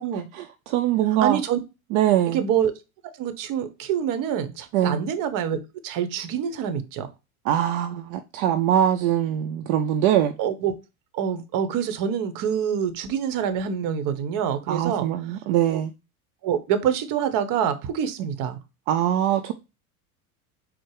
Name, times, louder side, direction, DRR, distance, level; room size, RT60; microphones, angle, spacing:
voice 1, 0.1-1.4 1.9-2.4 4.7-5.0 7.4-10.4 14.7-15.9 18.9-19.5, right 11 dB, 65° right, 0.6 m, -22 dB
voice 2, 1.2-1.6 2.3-2.7 3.2-5.6 5.8-7.1 10.4-10.7 11.1-15.1 15.7-15.8 16.4-18.6, right 8 dB, 50° right, 0.9 m, -26 dB
4.6 x 2.1 x 4.6 m
hypercardioid pair, 100°, 44 cm